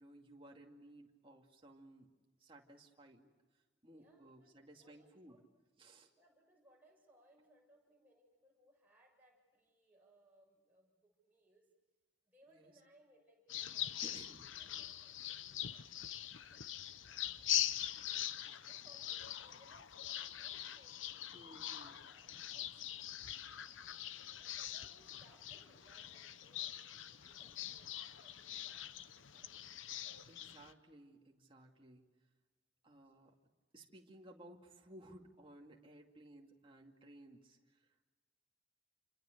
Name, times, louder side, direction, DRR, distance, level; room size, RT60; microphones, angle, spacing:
voice 1, 0.0-2.1 2.4-3.3 3.8-5.4 5.8-6.1 12.5-12.7 14.0-14.4 21.3-22.0 22.7-22.8 30.3-32.1 32.8-33.3 33.7-37.9, right 1 dB, 25° right, 1 dB, 2.4 m, -58 dB
voice 2, 3.9-5.4 6.1-11.6 12.2-14.1 14.6-18.2 18.7-22.7 24.4-30.5 31.6-31.7 33.0-33.3, right 1 dB, 10° right, -2 dB, 7.1 m, -69 dB
Laguna Pozo Airon Chapineria, 13.5-30.7, left 11 dB, 75° left, 0.9 m, -43 dB
28.0 x 26.5 x 6.7 m, 1.3 s
head